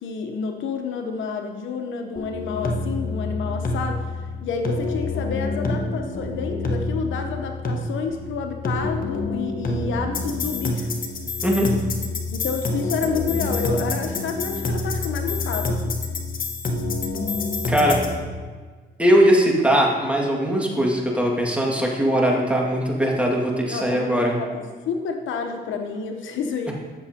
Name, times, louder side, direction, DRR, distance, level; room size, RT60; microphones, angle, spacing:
voice 1, 0.0-4.1 4.4-10.9 12.3-16.0 23.7-26.7, left 5 dB, 75° left, 4 dB, 0.9 m, -29 dB
sound 1, 2.2-18.2, left 2 dB, 45° left, 1.3 m, -27 dB
voice 2, 17.7-18.0 19.0-24.4, equal, 5° right, -2 dB, 2.0 m, -20 dB
13.5 x 7.1 x 2.9 m, 1.5 s
cardioid pair, 90°, 20 cm